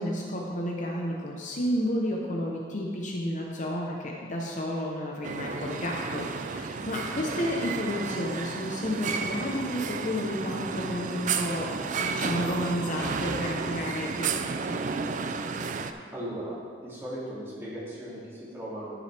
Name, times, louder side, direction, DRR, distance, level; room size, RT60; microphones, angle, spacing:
voice 1, 0.0-14.8, left 1 dB, 45° left, -2 dB, 0.8 m, -31 dB
sound 1, 5.2-15.9, right 5 dB, 45° right, 0.4 m, -32 dB
voice 2, 16.1-16.6 16.8-18.9, right 1 dB, 15° right, -9 dB, 2.6 m, -37 dB
13.0 x 6.2 x 3.4 m, 2.1 s
head